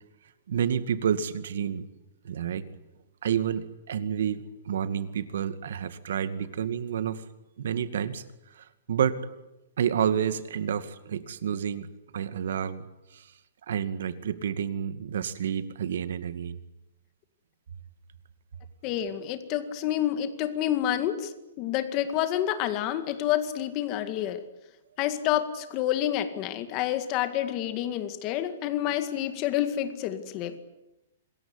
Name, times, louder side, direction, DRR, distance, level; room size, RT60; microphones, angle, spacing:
voice 1, 0.5-1.8 2.2-2.7 3.2-7.2 7.6-8.2 8.5-9.2 9.8-11.9 12.1-12.8 13.1-13.3 13.7-16.6, right 8 dB, 60° right, 12 dB, 2.2 m, -29 dB
voice 2, 18.8-21.3 21.6-24.4 25.0-30.6, left 11 dB, 25° left, 9 dB, 2.0 m, -28 dB
27.0 x 21.5 x 9.9 m, 0.95 s
hypercardioid pair, 180°, 0 cm